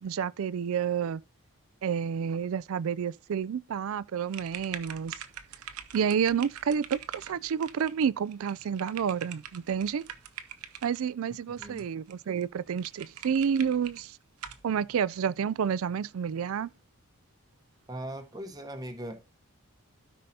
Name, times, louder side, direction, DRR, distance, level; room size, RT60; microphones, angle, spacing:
voice 1, 0.0-1.2 1.8-5.1 5.9-10.0 10.8-14.2 14.6-16.7, right 7 dB, 70° right, 0.3 m, -29 dB
sound 1, 4.3-11.0 11.6-12.1 12.4-12.5 12.8-14.0 14.4-14.6, right 9 dB, 90° right, 0.9 m, -44 dB
voice 2, 11.5-11.9 17.9-19.3, right 1 dB, 15° right, 1.0 m, -39 dB
16.0 x 5.5 x 2.8 m
head